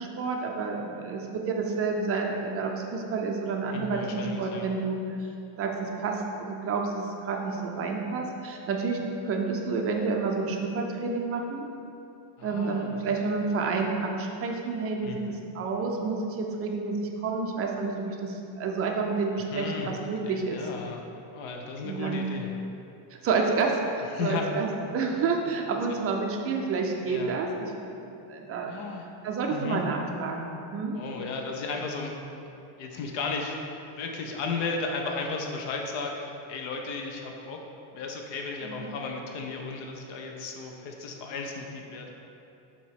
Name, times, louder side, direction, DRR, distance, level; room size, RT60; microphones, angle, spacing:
voice 1, 0.0-5.0 5.6-9.0 9.2-11.7 12.4-15.2 15.5-20.6 21.8-22.3 23.2-28.7 29.2-31.0 38.6-38.9, right 4 dB, 30° right, 1 dB, 0.4 m, -29 dB
voice 2, 3.7-4.7 12.4-13.1 15.0-15.2 19.5-19.9 20.2-21.0 21.3-22.5 24.1-24.5 25.4-25.5 27.1-27.3 28.6-29.1 29.5-29.8 30.9-32.1 32.8-33.6 33.9-37.6 37.9-42.1, left 4 dB, 65° left, 2 dB, 0.9 m, -34 dB
7.0 x 2.9 x 4.7 m, 2.7 s
cardioid pair, 155°, 49 cm